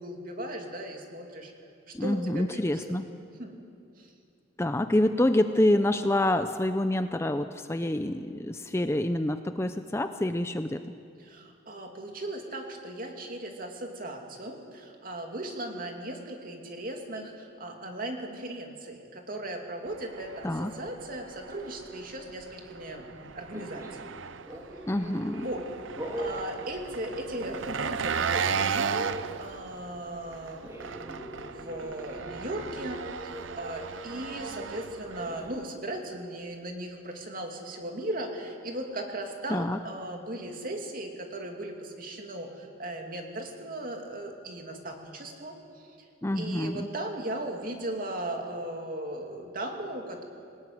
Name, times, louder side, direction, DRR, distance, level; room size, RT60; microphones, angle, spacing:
voice 1, 0.0-1.5 1.9-2.9 3.4-3.7 4.0-4.1 11.2-24.2 25.4-25.7 26.2-45.9 46.3-50.2, right 1 dB, 45° right, 2 dB, 2.7 m, -37 dB
voice 2, 1.9-3.1 4.6-10.8 20.4-20.7 24.9-25.5 39.5-39.8 46.2-46.9, left 1 dB, 15° left, 9 dB, 0.5 m, -27 dB
Engine, 19.9-35.7, right 6 dB, 75° right, 0.6 m, -36 dB
sound 1, 23.5-24.0 24.4-25.6 26.0-26.4 27.1-28.1 28.3-28.6 30.6-35.5, right 1 dB, 15° right, 3.3 m, -42 dB
22.0 x 19.0 x 9.5 m, 2.5 s
head